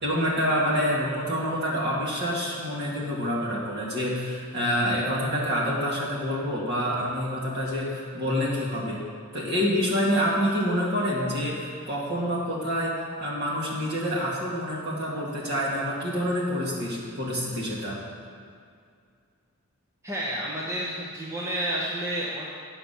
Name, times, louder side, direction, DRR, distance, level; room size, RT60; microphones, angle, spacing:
voice 1, 0.0-9.0 9.3-12.9 13.2-18.0, equal, 50° right, -5 dB, 2.2 m, -27 dB
voice 2, 20.0-22.5, right 1 dB, 15° right, -5 dB, 0.9 m, -30 dB
8.7 x 5.8 x 6.9 m, 2.3 s
head